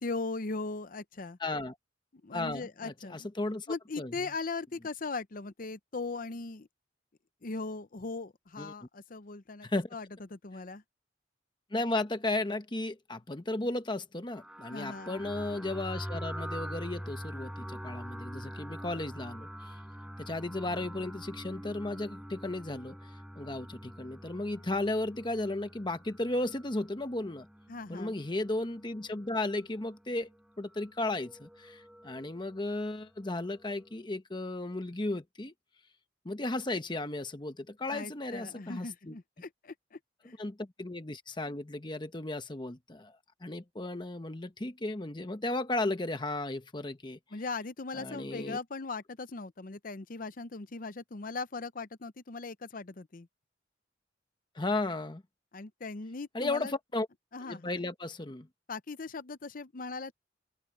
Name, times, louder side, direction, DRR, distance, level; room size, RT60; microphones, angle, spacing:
voice 1, 0.0-1.4 2.2-3.3 3.7-6.7 7.4-10.1 10.3-10.8 14.7-15.2 27.7-28.2 37.9-40.4 47.3-53.3 55.5-56.7 57.3-57.8 58.7-60.1, left 3 dB, 50° left, 0.7 m, -39 dB
voice 2, 1.4-1.7 2.3-3.7 4.0-4.3 8.6-8.7 9.6-9.9 11.7-19.8 20.2-23.1 23.4-27.5 27.9-30.3 30.6-35.5 36.2-39.2 40.4-47.2 47.9-48.6 54.5-55.2 56.3-57.1 57.4-58.5, left 2 dB, 25° left, 1.0 m, -35 dB
sound 1, 14.3-34.0, equal, 5° right, 7.3 m, -45 dB
open air
head